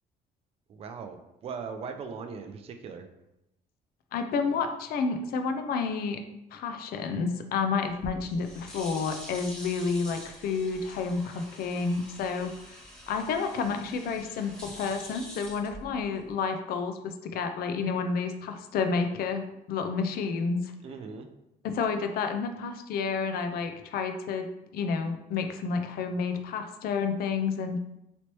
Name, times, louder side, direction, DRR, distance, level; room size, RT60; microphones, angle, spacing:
voice 1, 0.7-3.1 20.8-21.3, right 5 dB, 35° right, 6 dB, 0.3 m, -39 dB
voice 2, 4.1-6.2 6.5-12.8 13.1-20.7 21.6-27.8, left 5 dB, 65° left, 7 dB, 0.5 m, -30 dB
sound 1, 7.9-16.3, equal, 5° left, 1.0 m, -46 dB
3.1 x 2.9 x 2.9 m, 0.87 s
cardioid pair, 110°, 17 cm